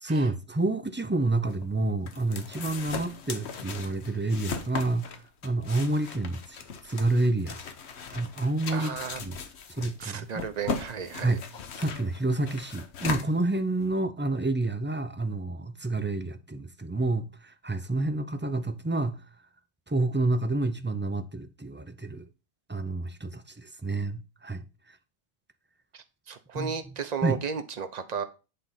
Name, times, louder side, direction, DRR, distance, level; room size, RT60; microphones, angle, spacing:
voice 1, 0.0-6.6 6.8-7.6 8.1-9.4 9.7-10.4 11.2-11.4 11.8-19.2 19.9-22.3 22.7-25.0 26.5-26.7 27.2-27.4, right 2 dB, 15° right, 0.4 m, -29 dB
sound 1, 1.5-14.0, left 5 dB, 75° left, 1.2 m, -38 dB
voice 2, 8.7-9.2 10.0-11.4 25.9-28.2, right 6 dB, 40° right, 0.9 m, -34 dB
8.4 x 4.0 x 5.6 m
omnidirectional pair, 1.1 m